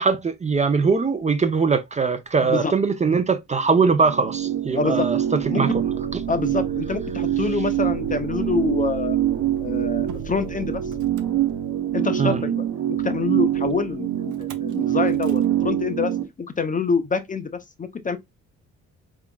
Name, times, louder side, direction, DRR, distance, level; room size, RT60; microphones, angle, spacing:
voice 1, 0.0-5.2 5.5-5.7 12.2-12.4, right 5 dB, 25° right, 0.5 m, -21 dB
voice 2, 2.4-2.7 4.7-5.1 5.5-5.6 6.3-9.2 9.6-10.8 11.9-12.6 12.9-14.1 14.4-17.5 17.8-18.2, left 4 dB, 25° left, 0.5 m, -26 dB
sound 1, 3.8-16.2, right 11 dB, 60° right, 1.0 m, -25 dB
Motor vehicle (road), 5.6-12.0 14.3-14.7 15.1-15.4, right 9 dB, 85° right, 0.6 m, -39 dB
3.6 x 3.5 x 2.2 m
cardioid pair, 90°, 30 cm